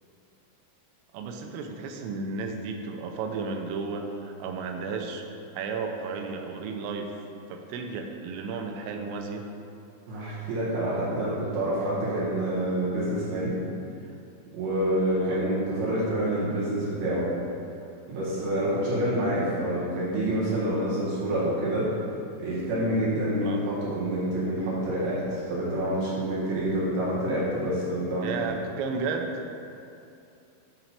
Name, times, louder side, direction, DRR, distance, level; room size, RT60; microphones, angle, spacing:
voice 1, 1.1-5.2 5.5-7.1 7.5-9.5 15.2-15.4 23.4-23.6 28.2-29.3, right 4 dB, 85° right, 3 dB, 3.1 m, -33 dB
voice 2, 10.1-13.5 14.5-17.3 18.1-21.9 22.4-28.5, right 1 dB, 60° right, -9 dB, 3.2 m, -27 dB
8.8 x 3.9 x 4.4 m, 2.6 s
omnidirectional pair, 5.8 m